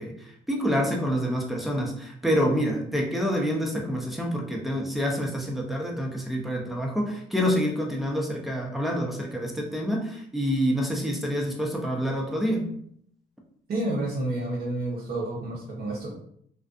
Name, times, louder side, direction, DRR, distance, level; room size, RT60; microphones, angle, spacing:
voice 1, 0.0-12.7, equal, ahead, 0 dB, 0.6 m, -27 dB
voice 2, 13.7-16.2, right 2 dB, 55° right, -4 dB, 0.8 m, -30 dB
2.4 x 2.3 x 2.4 m, 0.66 s
cardioid pair, 90°, 20 cm